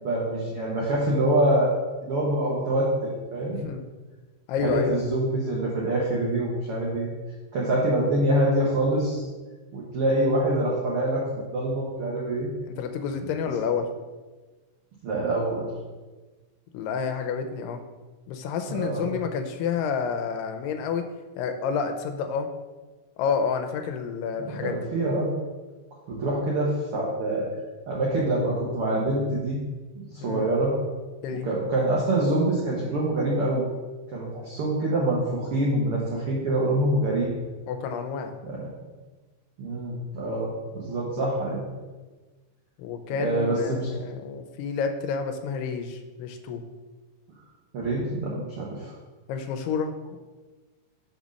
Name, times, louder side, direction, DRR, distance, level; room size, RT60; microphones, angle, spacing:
voice 1, 0.0-1.7 2.0-3.6 4.6-7.1 7.5-9.2 9.7-11.2 11.5-12.5 15.0-15.6 18.7-19.1 24.5-25.3 26.1-27.5 27.9-29.6 29.9-30.7 31.4-33.6 34.1-37.3 38.4-38.7 39.6-41.6 43.2-43.9 47.7-48.9, right 1 dB, 75° right, -4 dB, 1.2 m, -25 dB
voice 2, 3.5-3.8 4.5-5.0 12.7-13.9 16.7-17.8 18.3-21.0 21.4-22.5 23.2-24.8 30.2-30.5 31.2-31.5 37.7-38.3 42.8-46.6 49.3-50.2, left 6 dB, 80° left, 6 dB, 2.2 m, -29 dB
6.0 x 4.0 x 6.2 m, 1.3 s
omnidirectional pair, 4.0 m